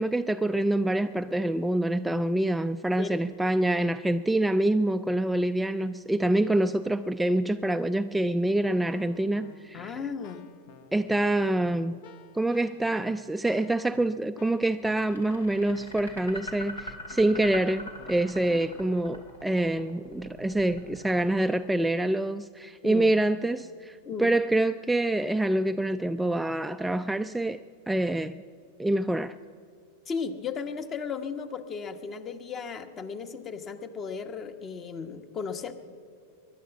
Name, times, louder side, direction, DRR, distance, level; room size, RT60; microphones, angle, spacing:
voice 1, 0.0-9.9 10.9-12.0 12.3-27.6 27.9-28.4 28.8-29.4, right 1 dB, 5° right, 0.3 m, -26 dB
Keyboard (musical), 8.6-18.9, left 6 dB, 55° left, 1.0 m, -53 dB
voice 2, 9.7-10.4 22.8-23.1 24.0-24.4 30.1-35.7, left 5 dB, 30° left, 1.1 m, -35 dB
sound 1, 14.9-22.0, left 1 dB, 85° left, 2.6 m, -42 dB
20.0 x 11.0 x 5.9 m
hypercardioid pair, 95°, 0 cm